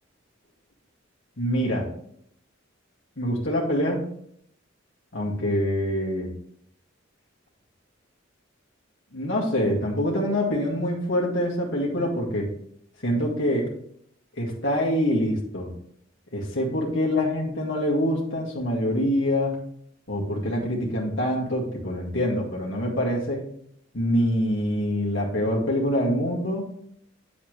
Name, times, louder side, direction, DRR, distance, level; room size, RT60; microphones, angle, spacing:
voice 1, 1.4-1.9 3.2-4.0 5.1-6.3 9.1-12.5 13.0-13.7 14.3-15.7 16.3-19.6 20.1-23.5 23.9-26.7, equal, 65° left, -3 dB, 2.0 m, -25 dB
8.7 x 7.0 x 3.2 m, 0.67 s
head